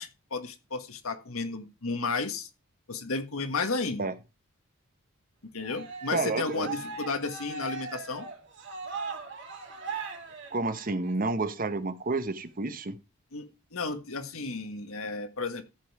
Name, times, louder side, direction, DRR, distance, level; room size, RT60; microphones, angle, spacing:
voice 1, 0.0-2.5 2.9-4.0 5.5-8.3 13.3-15.8, left 3 dB, 85° left, 8 dB, 1.6 m, -33 dB
Cheering, 5.6-11.1, right 4 dB, 60° right, 3.3 m, -39 dB
voice 2, 6.1-6.7 10.5-13.0, right 3 dB, 40° right, 11 dB, 1.0 m, -30 dB
14.0 x 5.5 x 4.8 m, 0.28 s
head